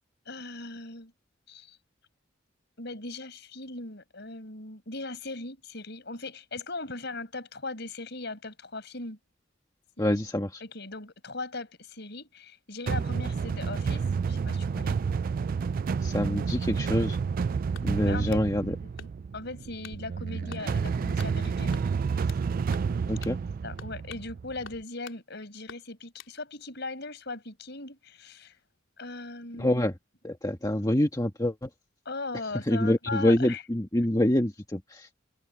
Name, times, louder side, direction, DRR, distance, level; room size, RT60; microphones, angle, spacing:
voice 1, 0.3-1.1 1.5-1.8 2.8-9.2 10.0-10.2 10.6-15.0 18.0-18.4 18.8-19.1 19.3-21.8 22.1-22.2 23.6-28.6 29.0-29.8 32.0-33.6, left 3 dB, 60° left, 6.0 m, -39 dB
voice 2, 10.0-10.6 16.0-17.2 17.8-18.7 23.1-23.4 29.6-29.9 30.2-31.7 32.6-35.1, left 1 dB, 20° left, 1.4 m, -26 dB
sound 1, 12.9-24.8, right 5 dB, 45° right, 0.3 m, -30 dB
sound 2, 17.7-18.5 19.0-19.4 19.8-20.0 20.5-20.7 21.2-21.4 21.7-22.5 22.7-22.9 23.2-23.4 23.8-24.3 24.6-25.2 25.7-26.4, left 6 dB, 75° left, 3.7 m, -48 dB
head